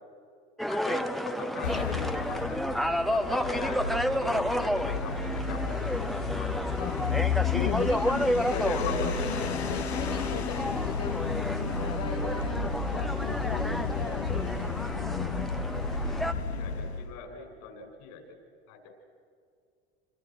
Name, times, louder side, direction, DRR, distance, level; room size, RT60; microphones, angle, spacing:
sound 1, 0.6-16.3, equal, ahead, 1.3 m, -31 dB
voice 1, 0.7-6.8 8.3-9.1 16.5-18.2 18.7-18.9, left 4 dB, 65° left, 4 dB, 7.5 m, -40 dB
sound 2, 1.6-17.1, left 5 dB, 85° left, 1.5 m, -32 dB
voice 2, 6.8-15.5, left 9 dB, 50° left, 2 dB, 2.2 m, -38 dB
28.5 x 26.5 x 6.3 m, 2.3 s
hypercardioid pair, 75°, 32 cm